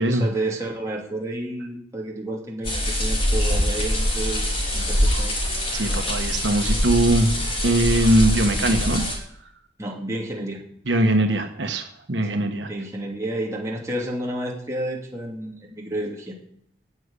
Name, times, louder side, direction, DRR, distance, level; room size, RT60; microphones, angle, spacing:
voice 1, 0.0-5.3 9.8-10.6 12.3-16.4, right 1 dB, 15° right, -2 dB, 2.7 m, -31 dB
sound 1, 2.6-9.2, equal, 30° left, 4.4 m, -23 dB
voice 2, 5.7-7.4 7.6-9.0 10.9-12.7, right 1 dB, 80° right, 5 dB, 1.3 m, -21 dB
13.5 x 6.5 x 9.8 m, 0.71 s
head